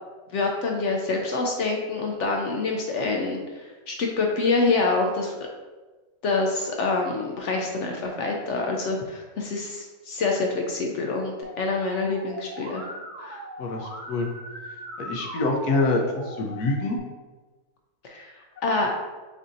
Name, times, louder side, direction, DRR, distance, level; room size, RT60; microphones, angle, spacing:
voice 1, 0.3-5.4 6.2-12.9 13.2-13.4 18.0-18.3 18.6-18.9, left 3 dB, 65° left, 1 dB, 0.8 m, -26 dB
Musical instrument, 11.4-17.0, right 1 dB, 45° right, 1.4 m, -39 dB
voice 2, 13.6-14.3 15.0-17.0, left 2 dB, 85° left, 2 dB, 1.2 m, -26 dB
6.7 x 2.7 x 2.6 m, 1.2 s
omnidirectional pair, 1.6 m